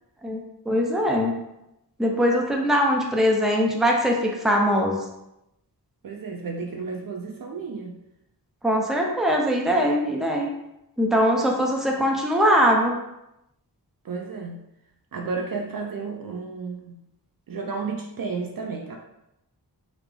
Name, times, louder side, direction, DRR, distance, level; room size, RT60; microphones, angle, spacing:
voice 1, 0.7-1.3 2.0-5.0 8.6-10.5 11.0-12.9, equal, ahead, 0 dB, 0.6 m, -21 dB
voice 2, 6.0-8.0 14.0-14.6 15.1-17.0 17.5-19.0, right 4 dB, 55° right, 1 dB, 0.5 m, -32 dB
3.5 x 2.0 x 3.3 m, 0.87 s
wide cardioid pair, 45°, 40 cm